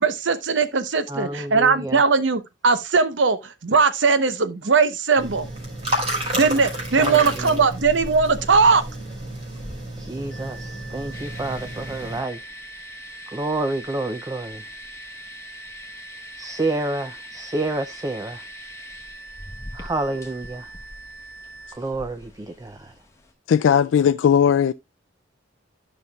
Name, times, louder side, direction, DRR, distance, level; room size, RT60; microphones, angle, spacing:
voice 1, 0.0-5.5 6.3-8.8, right 4 dB, 80° right, 0.8 m, -19 dB
voice 2, 1.1-2.0 7.0-7.6 10.0-12.4 13.3-14.6 16.4-18.4 19.7-20.7 21.8-22.9, right 2 dB, 20° right, 0.4 m, -29 dB
sound 1, 5.2-12.2, right 1 dB, 35° right, 3.7 m, -31 dB
sound 2, 10.3-21.7, right 3 dB, 60° left, 1.3 m, -43 dB
sound 3, 11.1-23.3, left 2 dB, 15° left, 1.4 m, -44 dB
voice 3, 23.5-24.7, left 8 dB, 85° left, 0.3 m, -17 dB
12.0 x 5.7 x 2.3 m
head